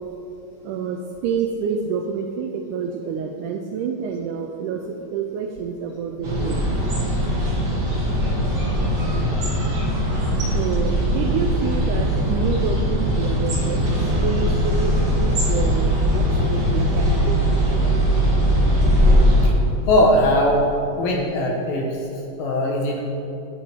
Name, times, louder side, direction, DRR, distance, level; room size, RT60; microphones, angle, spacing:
voice 1, 0.6-6.7 10.5-13.9 14.2-14.9 15.2-17.6, right 6 dB, 85° right, 4 dB, 1.8 m, -28 dB
sound 1, 6.2-19.5, equal, 35° right, 2.0 m, -20 dB
voice 2, 19.9-20.7 21.0-22.1 22.4-23.0, left 1 dB, 65° left, 0 dB, 2.1 m, -19 dB
9.6 x 8.7 x 4.4 m, 2.8 s
omnidirectional pair, 4.0 m